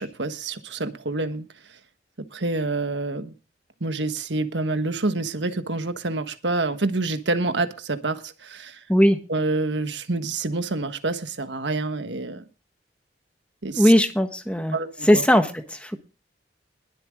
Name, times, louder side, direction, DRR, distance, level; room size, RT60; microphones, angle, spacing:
voice 1, 0.0-1.5 2.3-3.3 3.8-8.8 9.3-12.4 13.6-13.9 14.7-15.2, right 3 dB, 85° right, 1.5 m, -27 dB
voice 2, 8.9-9.2 13.8-14.8 15.0-16.0, equal, 5° left, 1.4 m, -19 dB
21.5 x 7.9 x 3.7 m
head